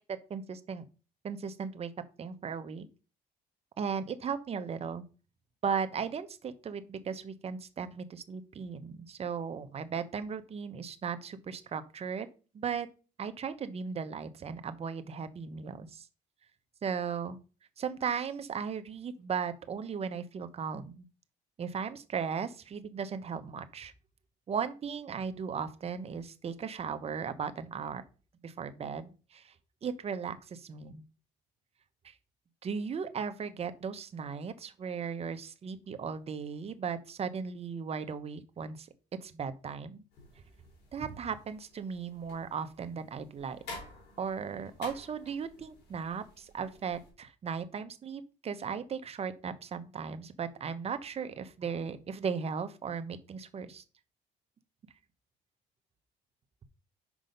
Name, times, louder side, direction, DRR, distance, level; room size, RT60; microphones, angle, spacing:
voice 1, 0.1-0.8 1.2-1.9 2.2-2.9 3.8-5.0 5.6-12.3 12.5-12.9 13.2-16.1 16.8-17.4 17.8-21.0 21.6-23.9 24.5-28.0 28.4-29.5 29.8-31.0 32.0-32.1 32.6-38.9 39.2-40.0 40.9-43.6 44.2-53.8, right 6 dB, 35° right, 10 dB, 0.9 m, -37 dB
sound 1, 40.1-47.1, left 2 dB, 80° left, 3.5 m, -51 dB
6.2 x 5.2 x 5.3 m, 0.35 s
cardioid pair, 110°, 17 cm